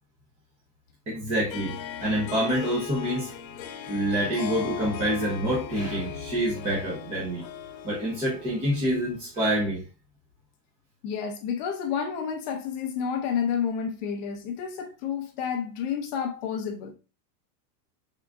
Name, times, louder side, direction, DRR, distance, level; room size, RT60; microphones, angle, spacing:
voice 1, 1.1-3.3 3.9-7.4 7.8-9.8, equal, 15° right, 0.7 m, -27 dB
Harp, 1.5-9.2, left 7 dB, 80° left, 0.8 m, -39 dB
voice 2, 11.0-16.9, left 7 dB, 30° left, 0.5 m, -30 dB
4.8 x 3.6 x 2.4 m
supercardioid pair, 170°, 49 cm